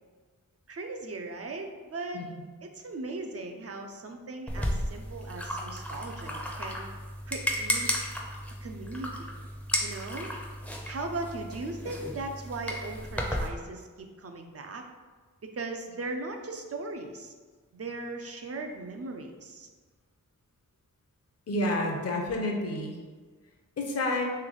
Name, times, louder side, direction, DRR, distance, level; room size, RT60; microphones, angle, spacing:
voice 1, 0.7-2.2 2.6-6.9 7.3-7.9 8.6-9.3 9.8-10.3 10.8-14.8 15.5-17.3 17.7-19.7, right 2 dB, 45° right, 4 dB, 0.5 m, -38 dB
sound 1, 4.5-13.5, equal, 5° left, 0.5 m, -34 dB
voice 2, 21.5-23.0 23.8-24.2, left 1 dB, 50° left, 1 dB, 0.6 m, -29 dB
3.3 x 3.0 x 3.8 m, 1.4 s
wide cardioid pair, 80°, 33 cm